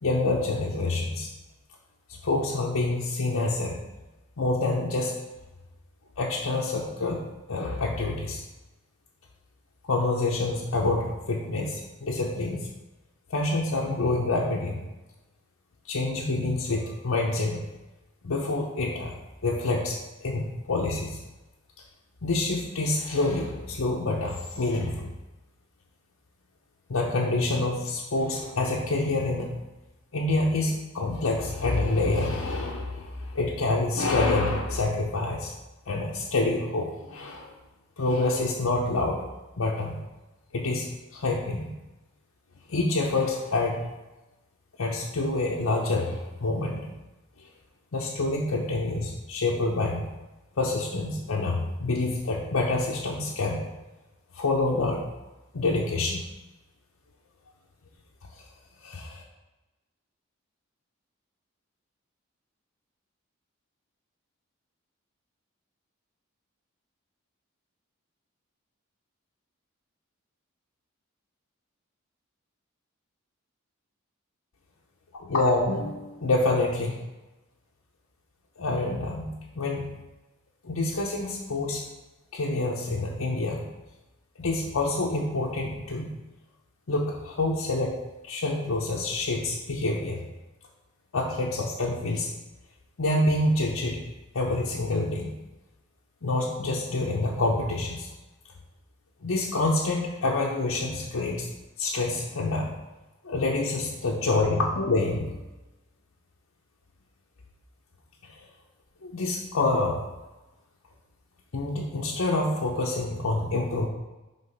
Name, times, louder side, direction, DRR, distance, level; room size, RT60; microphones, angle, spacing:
voice 1, 0.0-1.3 2.1-3.8 4.4-5.1 6.2-7.2 7.5-8.4 9.8-12.7 13.3-14.8 15.9-17.6 18.2-19.1 19.4-21.2 22.2-25.1 26.9-29.5 30.1-35.5 35.9-37.5 38.0-39.2 39.6-40.0 40.5-41.7 42.7-43.8 44.8-46.9 47.9-50.0 50.6-53.6 54.3-55.0 55.5-56.2 58.3-58.4 58.8-59.2 75.1-76.9 78.6-79.9 80.6-81.9 82.3-83.6 84.4-86.1 86.9-88.0 88.2-90.2 91.1-92.3 93.0-94.0 94.3-95.3 96.2-98.1 99.2-101.5 101.8-102.7 103.2-105.4 108.3-108.4 109.0-110.0 111.5-113.9, left 2 dB, 85° left, -3 dB, 0.7 m, -27 dB
5.6 x 3.6 x 5.2 m, 1.1 s
head